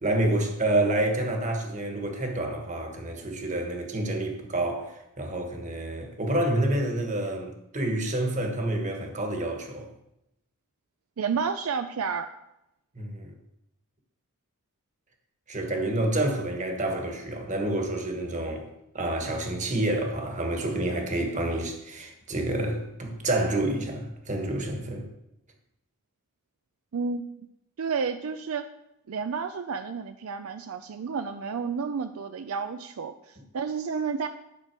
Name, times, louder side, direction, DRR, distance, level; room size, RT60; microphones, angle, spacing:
voice 1, 0.0-9.9 12.9-13.3 15.5-18.7 18.9-25.1, right 1 dB, 35° right, 1.5 m, -28 dB
voice 2, 11.2-12.3 26.9-27.3 27.8-28.7 29.1-34.3, right 5 dB, 70° right, 0.4 m, -31 dB
11.0 x 5.9 x 4.6 m
head